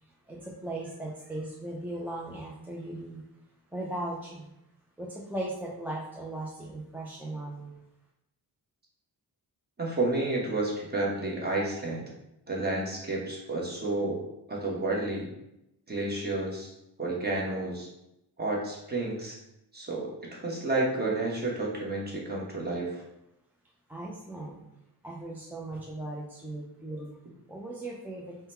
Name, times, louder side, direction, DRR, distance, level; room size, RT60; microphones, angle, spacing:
voice 1, 0.0-3.2 3.7-4.5 5.0-7.8 23.9-24.6 25.0-27.2 27.5-28.4, right 1 dB, 5° right, -3 dB, 0.3 m, -38 dB
voice 2, 9.8-12.1 12.5-14.2 14.5-15.3 15.9-16.7 17.0-17.9 18.4-19.4 19.7-23.0, right 2 dB, 25° right, -3 dB, 0.9 m, -31 dB
3.7 x 2.1 x 4.2 m, 0.85 s
wide cardioid pair, 160°, 40 cm